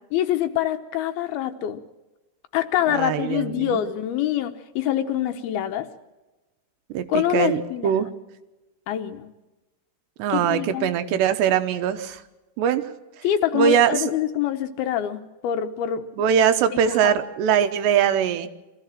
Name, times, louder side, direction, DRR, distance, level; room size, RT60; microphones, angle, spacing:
voice 1, 0.1-1.8 2.5-5.9 7.1-8.1 8.9-9.3 10.3-10.9 13.2-16.0 16.9-17.2, left 11 dB, 75° left, 8 dB, 2.6 m, -25 dB
voice 2, 2.9-3.8 6.9-8.1 10.2-12.2 12.6-12.9 13.5-14.0 16.2-18.5, right 9 dB, 85° right, 9 dB, 3.2 m, -21 dB
23.5 x 15.0 x 7.5 m, 1.1 s
omnidirectional pair, 4.9 m